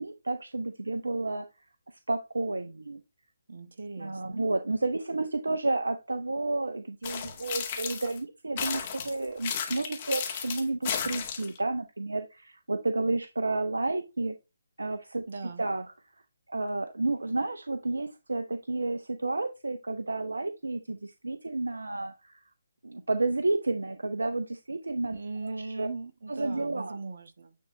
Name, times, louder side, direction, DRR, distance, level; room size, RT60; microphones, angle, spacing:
voice 1, 0.0-1.5 2.1-3.0 4.0-14.3 14.8-15.2 15.6-15.9 16.5-22.4 22.8-25.2 25.4-25.9 26.3-27.0, right 2 dB, 80° right, 0.7 m, -31 dB
voice 2, 3.5-4.5 15.3-15.7 25.1-27.6, right 3 dB, 60° right, 1.3 m, -39 dB
sound 1, 7.0-8.2 8.6-11.6, left 7 dB, 35° left, 1.9 m, -34 dB
9.7 x 3.8 x 3.2 m
figure-of-eight pair, 145°, 0 cm